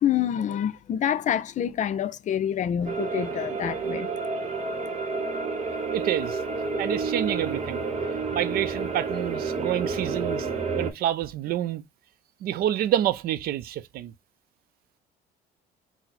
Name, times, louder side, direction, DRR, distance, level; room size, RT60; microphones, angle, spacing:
voice 1, 0.0-4.1, left 9 dB, 45° left, 0.5 m, -27 dB
sound 1, 2.8-10.9, right 4 dB, 40° right, 1.0 m, -30 dB
voice 2, 5.9-6.4 6.8-7.8 8.3-10.5 10.8-11.8 12.4-14.1, right 12 dB, 65° right, 0.4 m, -28 dB
4.0 x 2.1 x 4.2 m
cardioid pair, 110°, 17 cm